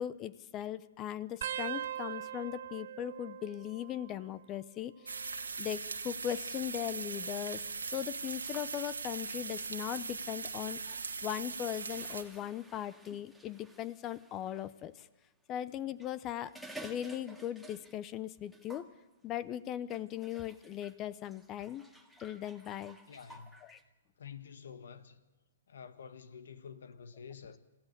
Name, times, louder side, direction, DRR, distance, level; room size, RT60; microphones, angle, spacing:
voice 1, 0.0-5.1 5.6-7.6 7.9-10.8 11.2-15.1 15.5-16.5 16.8-18.9 19.2-21.9 22.2-23.0 23.7-23.8, left 11 dB, 25° left, 0.8 m, -39 dB
sound 1, 1.4-4.6 4.9-5.5 6.5-7.9 8.6-8.9 10.1-10.5 12.0-12.1, right 11 dB, 60° right, 0.6 m, -43 dB
sound 2, 5.1-12.2, right 4 dB, 90° right, 1.8 m, -40 dB
sound 3, 8.1-14.7 15.8-18.2 18.4-18.9 19.9-23.8, right 1 dB, ahead, 2.0 m, -55 dB
voice 2, 23.1-23.6 24.2-25.2 25.7-27.6, left 7 dB, 70° left, 1.7 m, -49 dB
26.5 x 15.5 x 6.9 m
hypercardioid pair, 130°, 0 cm